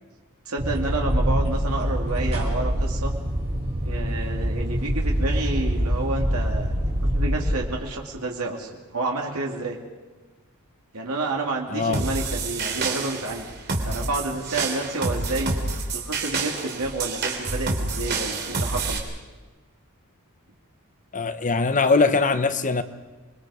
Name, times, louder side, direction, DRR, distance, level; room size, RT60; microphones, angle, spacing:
voice 1, 0.4-3.1 3.8-6.7 7.1-9.8 10.9-13.4 13.8-15.6 15.9-19.0, right 2 dB, 75° right, -1 dB, 2.6 m, -29 dB
sound 1, 0.6-7.5, equal, 30° right, 6.1 m, -25 dB
voice 2, 11.7-12.0 21.1-22.8, left 4 dB, 35° left, 10 dB, 1.0 m, -21 dB
sound 2, 11.9-19.0, right 3 dB, 50° right, 3.2 m, -28 dB
27.5 x 22.0 x 5.0 m, 1.3 s
head